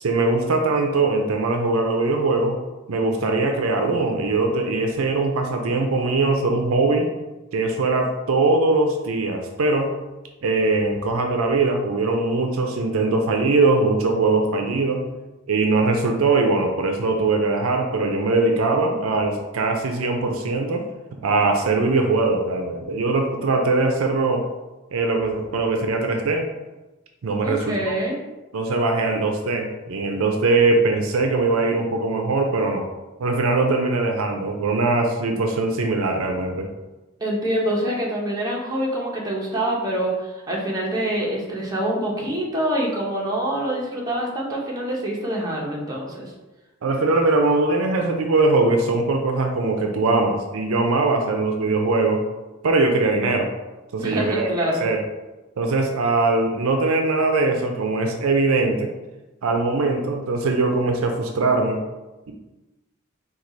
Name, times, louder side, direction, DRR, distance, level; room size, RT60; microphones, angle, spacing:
voice 1, 0.0-2.6 2.9-7.1 7.5-9.9 10.4-15.0 15.5-20.8 21.2-24.4 24.9-26.5 27.2-27.9 28.5-32.8 33.2-36.7 46.8-52.2 52.6-53.5 53.9-54.5 54.8-55.0 55.6-58.9 59.4-61.8, right 3 dB, 75° right, 3 dB, 0.5 m, -21 dB
voice 2, 27.4-28.2 37.2-46.3 54.0-54.8, right 1 dB, 20° right, -4 dB, 0.9 m, -25 dB
4.6 x 2.4 x 3.8 m, 1.1 s
head